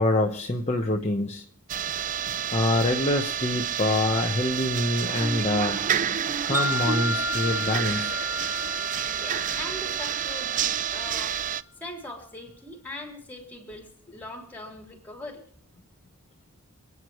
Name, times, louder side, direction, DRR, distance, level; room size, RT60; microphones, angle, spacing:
voice 1, 0.0-1.4 2.5-5.8 6.4-8.2, left 1 dB, 30° left, 1 dB, 1.1 m, -25 dB
sound 1, 1.7-11.6, right 9 dB, 35° right, 0.4 m, -29 dB
Wind chime, 6.5-10.8, left 1 dB, 10° right, 1.3 m, -32 dB
voice 2, 9.0-11.4 11.8-15.5, left 1 dB, 10° left, 1 dB, 3.6 m, -41 dB
27.5 x 9.6 x 3.1 m, 0.63 s
head